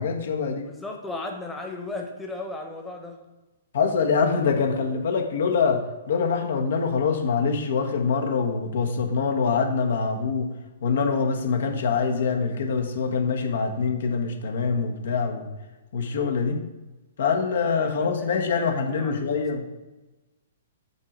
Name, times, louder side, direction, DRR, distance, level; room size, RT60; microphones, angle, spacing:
voice 1, 0.0-0.7 3.7-10.5 10.8-15.5 15.9-16.6 17.2-19.6, left 5 dB, 55° left, 3 dB, 1.2 m, -24 dB
voice 2, 0.6-3.2 17.6-19.5, left 2 dB, 10° left, 2 dB, 1.2 m, -36 dB
8.3 x 4.7 x 5.3 m, 1.1 s
figure-of-eight pair, 115°, 0 cm